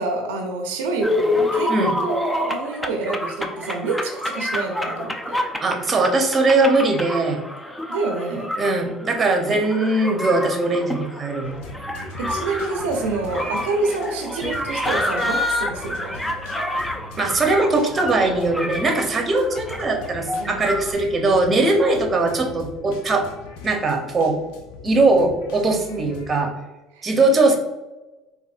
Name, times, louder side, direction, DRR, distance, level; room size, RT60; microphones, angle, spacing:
voice 1, 0.0-5.4 7.9-8.5 12.2-16.3 20.4-20.7 25.9-26.2 26.9-27.1, right 3 dB, 90° right, 3 dB, 0.6 m, -27 dB
sound 1, 1.0-20.9, left 1 dB, 10° left, 0.4 m, -28 dB
voice 2, 5.6-7.4 8.6-11.7 17.2-23.3 23.6-24.4 24.8-26.5 27.0-27.6, right 2 dB, 30° right, 3 dB, 0.7 m, -20 dB
sound 2, 11.4-26.4, left 3 dB, 80° left, 0.5 m, -40 dB
4.2 x 2.5 x 2.5 m, 1.1 s
supercardioid pair, 85°, 0 cm